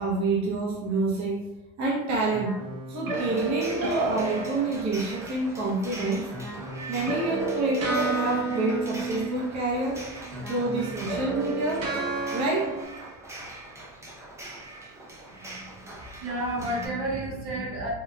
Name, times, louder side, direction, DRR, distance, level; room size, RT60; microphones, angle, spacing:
voice 1, 0.0-1.5 1.8-2.5 2.9-6.3 6.9-10.0 10.5-11.9 12.3-12.7, right 2 dB, 45° right, -4 dB, 0.8 m, -27 dB
sound 1, 2.3-5.4 6.3-10.0 10.2-12.8, right 3 dB, 65° right, 1.1 m, -32 dB
sound 2, 3.2-16.9, right 2 dB, 10° right, 0.5 m, -42 dB
voice 2, 15.3-15.9 16.2-17.9, right 1 dB, 80° right, -5 dB, 1.3 m, -32 dB
4.0 x 2.2 x 2.2 m, 1.0 s
cardioid pair, 115°, 37 cm